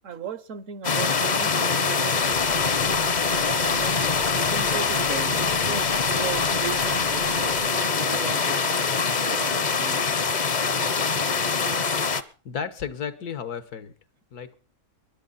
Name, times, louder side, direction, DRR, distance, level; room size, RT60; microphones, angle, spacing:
voice 1, 0.0-2.6 3.3-4.0 4.3-8.6 9.2-10.1, right 7 dB, 60° right, 1.1 m, -37 dB
sound 1, 0.8-12.2, left 5 dB, 40° left, 0.7 m, -24 dB
sound 2, 2.2-7.7, right 3 dB, 75° right, 2.3 m, -44 dB
voice 2, 12.5-13.9 14.3-14.6, left 7 dB, 85° left, 1.7 m, -33 dB
22.0 x 11.0 x 4.0 m
omnidirectional pair, 1.6 m